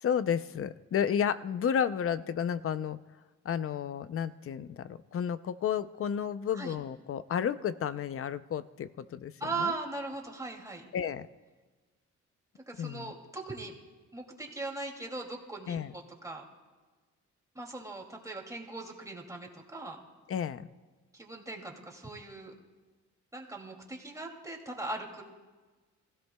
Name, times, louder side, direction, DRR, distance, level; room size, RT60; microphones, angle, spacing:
voice 1, 0.0-3.0 3.4-9.3 9.6-9.7 10.9-11.3 12.8-13.1 15.7-15.9 20.3-20.7, left 8 dB, 45° left, 14 dB, 0.6 m, -32 dB
voice 2, 9.4-10.8 12.7-13.8 14.1-16.4 17.5-20.0 21.1-22.5 23.3-25.2, right 3 dB, 10° right, 1 dB, 2.6 m, -39 dB
25.5 x 16.0 x 2.3 m, 1.3 s
cardioid pair, 90°, 30 cm